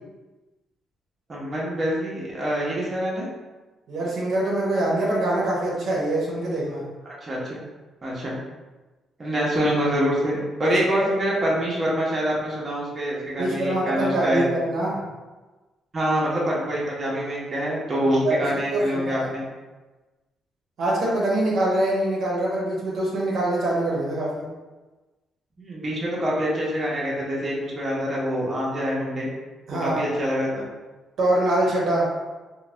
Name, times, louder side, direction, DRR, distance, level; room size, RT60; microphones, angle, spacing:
voice 1, 1.3-3.3 7.1-7.7 8.0-8.3 9.2-14.4 15.9-19.4 25.6-29.3 29.8-30.6, equal, 35° right, -5 dB, 0.8 m, -25 dB
voice 2, 3.9-6.9 10.9-11.1 13.4-15.0 18.2-18.4 18.7-19.3 20.8-24.4 29.7-30.0 31.2-32.1, right 1 dB, 65° right, -5 dB, 0.8 m, -24 dB
2.5 x 2.2 x 3.2 m, 1.2 s
cardioid pair, 90°, 0 cm